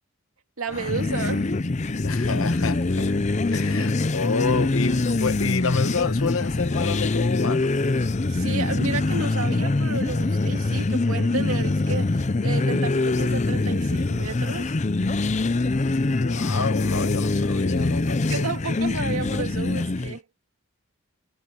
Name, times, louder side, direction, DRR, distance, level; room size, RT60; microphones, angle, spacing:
voice 1, 0.6-1.5 8.3-14.8 18.3-20.2, right 3 dB, 85° right, 2.3 m, -32 dB
sound 1, 0.7-20.2, left 2 dB, 30° left, 0.5 m, -24 dB
voice 2, 2.0-3.2 3.5-7.7 16.2-18.5, left 4 dB, 75° left, 1.1 m, -28 dB
head